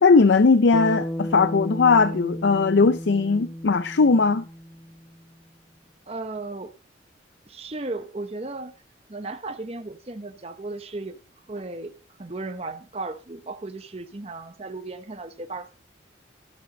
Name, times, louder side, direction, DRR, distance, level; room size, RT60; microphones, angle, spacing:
voice 1, 0.0-4.4, left 4 dB, 65° left, 0.5 m, -18 dB
Bass guitar, 0.7-5.2, equal, 5° left, 0.6 m, -34 dB
voice 2, 6.1-6.8 7.5-8.7 9.1-11.2 11.5-11.9 12.2-15.7, right 2 dB, 30° right, 0.8 m, -35 dB
14.0 x 7.7 x 5.2 m
head